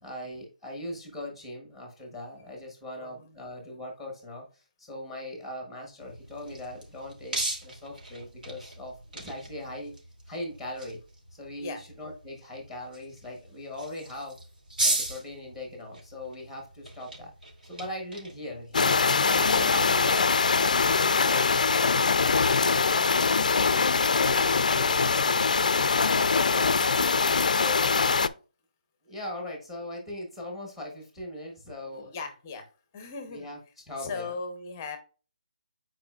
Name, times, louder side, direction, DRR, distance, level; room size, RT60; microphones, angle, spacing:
voice 1, 0.0-10.0 10.3-11.0 11.3-14.4 14.8-17.3 17.6-18.9 19.3-25.5 25.9-27.0 27.5-28.0 29.0-32.1 33.3-33.6 33.9-34.3, left 1 dB, ahead, 0 dB, 1.0 m, -40 dB
voice 2, 3.0-3.4 11.6-11.8 31.8-32.7 32.9-33.5 34.0-35.0, left 4 dB, 15° left, 7 dB, 0.7 m, -38 dB
sound 1, 6.0-20.5, right 2 dB, 75° right, 2.6 m, -38 dB
sound 2, 18.7-28.3, left 5 dB, 55° left, 0.4 m, -23 dB
8.5 x 4.7 x 2.4 m, 0.35 s
hypercardioid pair, 180°, 5 cm